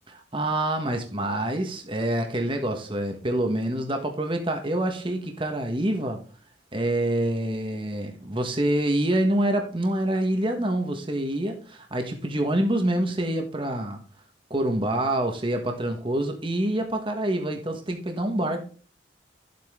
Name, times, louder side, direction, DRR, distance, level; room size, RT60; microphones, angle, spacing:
voice 1, 0.3-6.2 6.7-14.0 14.5-18.7, right 1 dB, 30° right, 4 dB, 1.3 m, -26 dB
11.0 x 7.8 x 3.7 m, 0.39 s
head